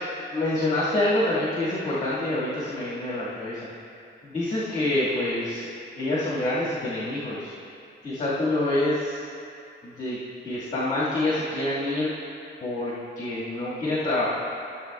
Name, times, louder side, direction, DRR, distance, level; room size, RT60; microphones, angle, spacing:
voice 1, 0.3-3.7 4.2-5.7 5.9-7.5 8.0-9.3 9.8-10.2 10.4-12.1 12.6-14.3, left 1 dB, 35° left, -9 dB, 1.7 m, -26 dB
14.0 x 7.3 x 2.3 m, 2.5 s
cardioid pair, 140°, 20 cm